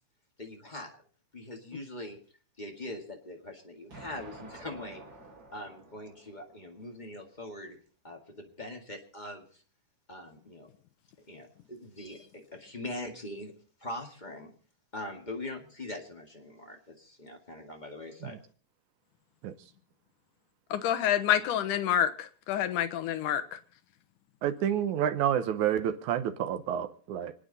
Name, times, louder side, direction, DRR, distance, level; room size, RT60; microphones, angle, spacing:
voice 1, 0.4-0.9 1.3-2.2 2.6-5.0 5.5-7.8 8.0-9.5 10.1-10.7 11.3-13.5 13.8-14.5 14.9-18.4, left 1 dB, 20° left, 1.5 m, -42 dB
Explosion, 3.9-6.9, right 2 dB, 30° right, 6.8 m, -50 dB
voice 2, 20.7-23.6, left 10 dB, 80° left, 2.5 m, -28 dB
voice 3, 24.4-27.3, right 10 dB, 75° right, 2.3 m, -29 dB
28.5 x 9.5 x 4.1 m
omnidirectional pair, 3.7 m